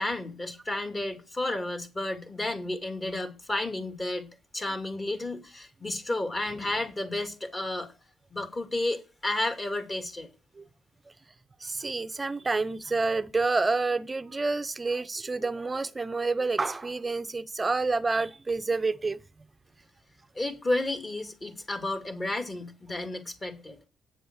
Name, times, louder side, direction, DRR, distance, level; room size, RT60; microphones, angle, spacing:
voice 1, 0.0-4.3 4.5-7.9 8.3-10.3 20.3-23.8, left 2 dB, 25° left, 2.3 m, -32 dB
voice 2, 11.6-19.2, right 3 dB, 25° right, 0.6 m, -28 dB
8.9 x 6.9 x 6.3 m
cardioid pair, 90°, 0 cm